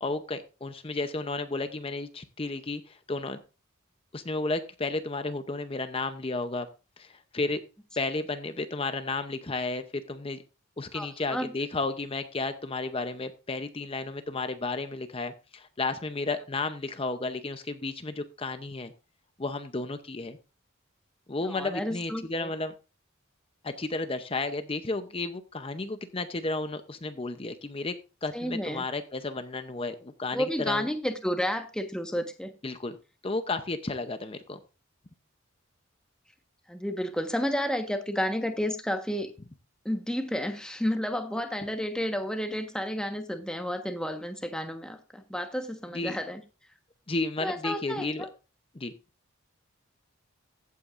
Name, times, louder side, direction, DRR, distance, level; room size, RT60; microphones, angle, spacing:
voice 1, 0.0-3.4 4.1-6.7 7.0-7.6 8.0-10.4 10.8-18.9 19.4-20.4 21.3-22.7 23.6-27.9 28.2-30.9 32.6-33.0 33.2-34.6 45.9-46.2 47.1-48.3 48.7-48.9, left 3 dB, 25° left, 9 dB, 0.7 m, -33 dB
voice 2, 10.9-11.5 21.4-22.5 28.3-28.9 30.3-32.5 36.7-39.3 39.8-46.4 47.4-48.3, equal, 5° left, 6 dB, 1.2 m, -31 dB
15.5 x 8.5 x 2.5 m, 0.31 s
head